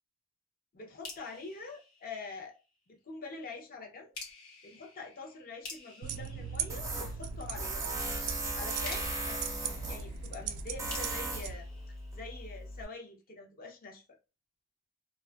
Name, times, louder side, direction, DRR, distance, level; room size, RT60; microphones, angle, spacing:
voice 1, 0.7-2.6 2.9-4.1 4.6-7.7 8.4-9.4 9.9-11.7 12.1-14.0, left 3 dB, 45° left, 0.6 m, -45 dB
sound 1, 1.0-2.8 4.1-7.5 8.8-12.7, left 3 dB, 80° left, 0.9 m, -50 dB
sound 2, 6.0-11.5, right 7 dB, 75° right, 0.3 m, -40 dB
Tools, 6.7-12.8, right 2 dB, 15° right, 0.5 m, -38 dB
2.5 x 2.3 x 2.2 m
head